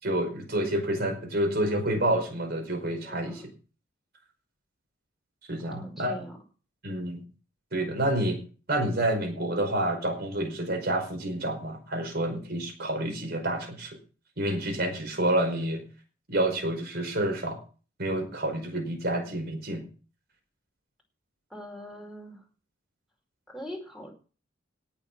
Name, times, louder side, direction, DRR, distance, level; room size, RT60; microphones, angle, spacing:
voice 1, 0.0-3.4 5.5-6.1 6.8-7.2 7.7-8.4 8.7-14.0 14.4-15.8 16.3-17.6 18.0-19.8, right 1 dB, 50° right, 4 dB, 5.1 m, -28 dB
voice 2, 3.0-3.5 5.6-6.4 21.5-22.4 23.5-24.1, equal, ahead, 1 dB, 4.8 m, -42 dB
18.0 x 6.9 x 6.0 m, 0.37 s
head